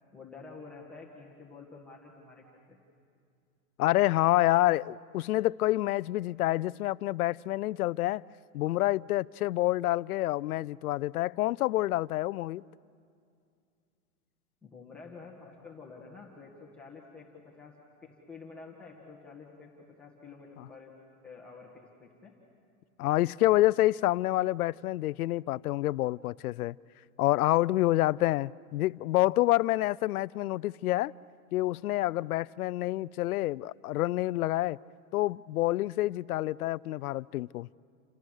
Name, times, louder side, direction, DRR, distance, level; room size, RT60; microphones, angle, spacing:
voice 1, 0.1-2.8 14.6-17.3 17.6-17.7 18.0-19.7 20.0-20.9 21.2-22.3, left 4 dB, 5° left, 1.6 m, -49 dB
voice 2, 3.8-8.2 8.5-12.6 23.0-26.7 27.2-31.1 31.5-34.8 35.1-37.7, left 16 dB, 85° left, 0.6 m, -27 dB
29.5 x 26.5 x 6.4 m
supercardioid pair, 175°, 43 cm